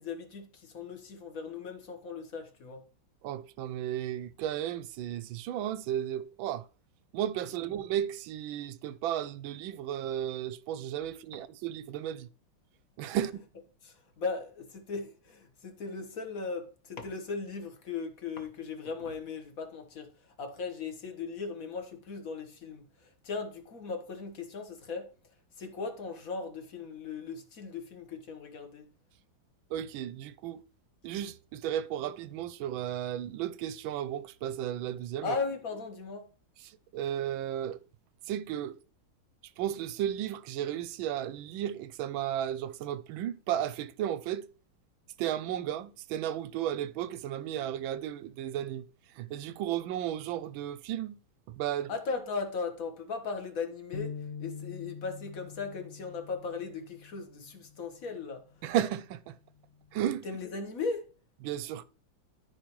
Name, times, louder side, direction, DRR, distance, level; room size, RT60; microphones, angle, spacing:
voice 1, 0.0-2.8 13.8-20.1 20.4-25.1 25.6-28.8 35.2-36.3 51.9-58.4 60.2-61.1, left 4 dB, 45° left, 1.5 m, -38 dB
voice 2, 3.2-6.6 7.1-12.3 13.0-13.4 29.7-30.6 31.0-35.4 36.9-37.8 38.3-38.8 39.6-44.5 45.2-48.9 49.2-51.2 51.5-51.9 58.6-59.4 59.9-60.3 61.4-61.9, right 11 dB, 75° right, 1.3 m, -34 dB
sound 1, 53.9-58.2 58.7-58.9 59.7-60.2, left 6 dB, 80° left, 0.6 m, -45 dB
13.0 x 5.0 x 3.0 m
omnidirectional pair, 2.3 m